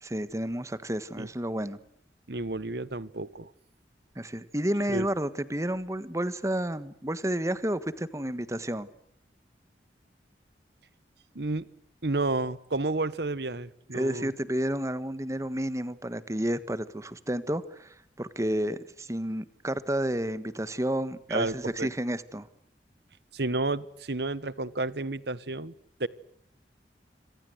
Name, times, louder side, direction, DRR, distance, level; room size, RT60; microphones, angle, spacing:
voice 1, 0.0-1.8 4.1-8.9 13.9-22.5, right 1 dB, 15° right, 14 dB, 1.5 m, -31 dB
voice 2, 2.3-3.5 4.9-5.1 11.3-11.7 12.0-14.3 21.3-21.9 23.3-25.7 26.0-26.1, right 2 dB, 70° right, 18 dB, 1.2 m, -31 dB
27.5 x 25.5 x 8.0 m, 0.67 s
head